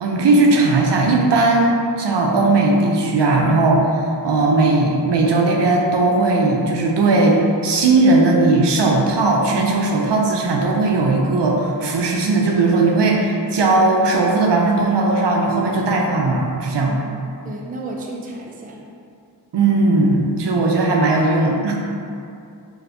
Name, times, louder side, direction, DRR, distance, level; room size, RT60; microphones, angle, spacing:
voice 1, 0.0-16.9 19.5-21.8, right 2 dB, 75° right, -1 dB, 0.5 m, -17 dB
voice 2, 16.9-18.8, right 1 dB, 20° right, -1 dB, 0.3 m, -33 dB
2.7 x 2.5 x 3.3 m, 2.5 s
wide cardioid pair, 65°, 43 cm